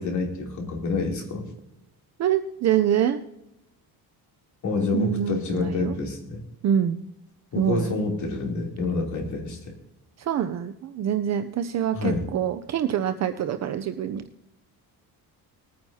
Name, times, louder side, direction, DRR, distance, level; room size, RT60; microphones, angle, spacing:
voice 1, 0.0-1.5 4.6-6.4 7.5-9.7 11.9-12.2, left 3 dB, 50° left, 0 dB, 3.0 m, -28 dB
voice 2, 2.2-3.2 4.9-5.9 6.6-7.0 7.6-8.0 10.2-14.2, right 9 dB, 45° right, 9 dB, 0.6 m, -25 dB
20.0 x 9.4 x 2.8 m, 0.88 s
cardioid pair, 150°, 39 cm